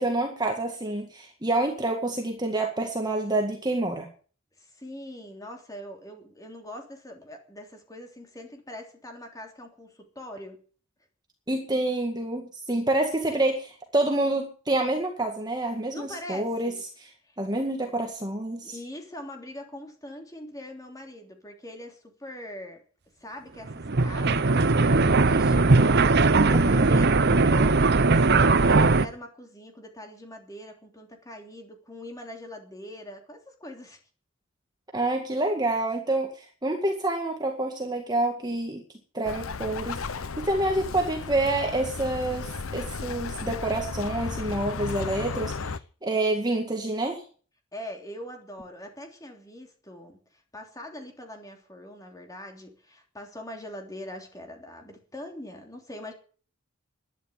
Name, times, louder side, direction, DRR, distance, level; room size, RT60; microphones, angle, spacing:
voice 1, 0.0-4.1 11.5-17.1 17.4-18.7 26.5-26.9 34.9-38.8 39.1-45.7 46.0-47.2, right 2 dB, 20° right, 2 dB, 2.0 m, -27 dB
voice 2, 4.6-10.6 15.9-16.8 17.3-17.4 18.6-22.8 23.2-34.0 47.7-50.2 50.5-56.1, left 1 dB, 15° left, 3 dB, 3.2 m, -42 dB
sound 1, 23.7-29.1, right 3 dB, 50° right, 0.8 m, -19 dB
Bird, 39.2-45.8, left 4 dB, 75° left, 0.8 m, -34 dB
12.0 x 10.0 x 9.3 m, 0.42 s
head